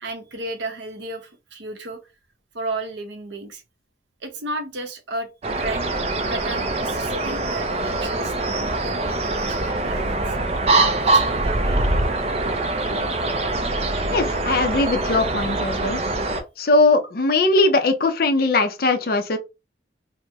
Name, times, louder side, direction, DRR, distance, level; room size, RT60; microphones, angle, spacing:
voice 1, 0.0-2.0 2.5-3.6 4.2-5.3 5.6-6.0 6.2-10.4 10.7-11.8, right 2 dB, 80° right, 0.7 m, -33 dB
sound 1, 5.4-16.4, right 2 dB, 35° right, 0.4 m, -23 dB
voice 2, 14.1-16.0 16.6-19.4, left 2 dB, 50° left, 0.5 m, -20 dB
2.9 x 2.0 x 3.4 m
head